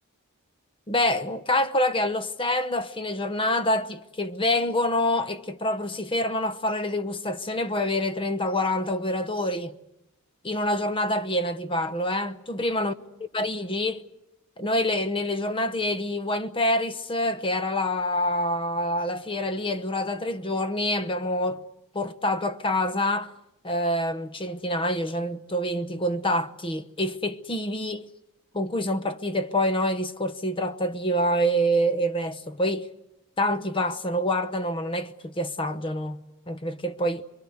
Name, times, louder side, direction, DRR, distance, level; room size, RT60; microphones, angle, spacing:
voice 1, 0.9-9.8 10.4-12.9 13.3-14.0 14.6-21.6 21.9-23.3 23.6-28.1 28.5-32.9 33.4-37.2, left 1 dB, 25° left, 0.9 m, -26 dB
26.5 x 22.5 x 7.9 m
head